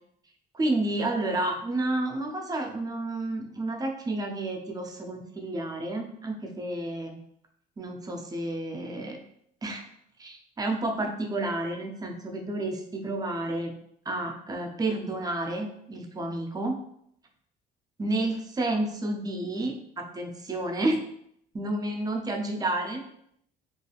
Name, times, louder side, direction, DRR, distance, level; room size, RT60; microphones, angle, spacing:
voice 1, 0.5-7.2 7.8-9.2 9.6-9.8 10.2-13.7 14.1-16.8 18.0-21.0 21.5-23.0, right 2 dB, 20° right, 2 dB, 0.5 m, -30 dB
3.2 x 2.4 x 2.3 m, 0.72 s
cardioid pair, 110°, 17 cm